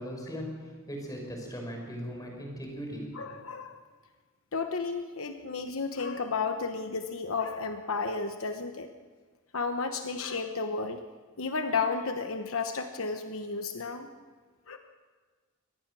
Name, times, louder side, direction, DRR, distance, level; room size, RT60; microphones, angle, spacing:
voice 1, 0.0-3.0, equal, 15° left, 1 dB, 5.4 m, -38 dB
voice 2, 3.1-3.8 4.5-8.9 9.5-11.0 11.4-14.1 14.7-14.8, left 4 dB, 70° left, 6 dB, 1.1 m, -32 dB
24.5 x 19.0 x 6.2 m, 1.4 s
head